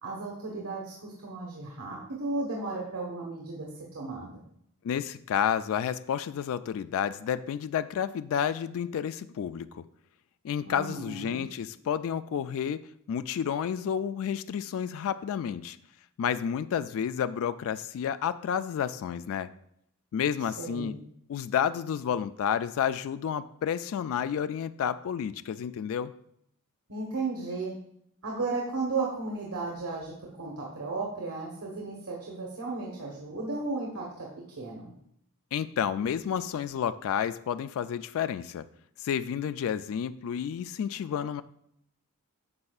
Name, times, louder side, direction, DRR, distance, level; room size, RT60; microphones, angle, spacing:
voice 1, 0.0-4.3 10.6-11.4 20.6-21.0 26.9-27.7 28.2-34.3 34.6-34.9, right 3 dB, 80° right, -3 dB, 1.3 m, -34 dB
voice 2, 4.8-9.8 10.4-12.8 13.1-15.8 16.2-19.5 20.1-21.0 21.3-26.1 35.5-38.6 39.0-41.4, left 8 dB, 65° left, 13 dB, 0.3 m, -30 dB
9.6 x 6.6 x 2.4 m, 0.74 s
head